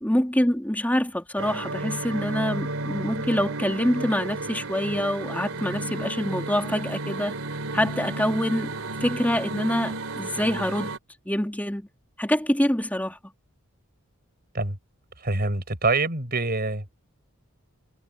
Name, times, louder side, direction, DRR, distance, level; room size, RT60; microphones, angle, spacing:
voice 1, 0.0-7.4 7.7-8.7 9.0-11.0 11.2-11.9 12.2-13.2, equal, 10° left, 3.1 m, -25 dB
sound 1, 1.4-11.0, right 2 dB, 80° right, 3.1 m, -32 dB
voice 2, 15.2-16.8, right 3 dB, 45° right, 4.6 m, -25 dB
head